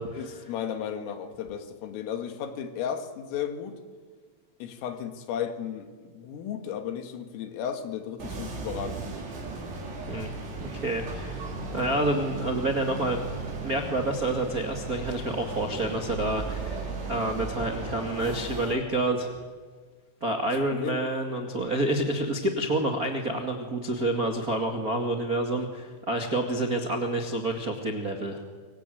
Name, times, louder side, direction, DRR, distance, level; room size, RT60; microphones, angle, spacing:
voice 1, 0.1-3.8 4.6-9.2 20.7-21.0, left 8 dB, 80° left, 7 dB, 4.6 m, -34 dB
sound 1, 8.2-18.7, right 3 dB, 55° right, 6.4 m, -36 dB
voice 2, 10.6-13.2 13.6-19.4 20.2-28.4, right 2 dB, 85° right, 3 dB, 0.8 m, -28 dB
26.5 x 24.5 x 9.3 m, 1.5 s
omnidirectional pair, 5.8 m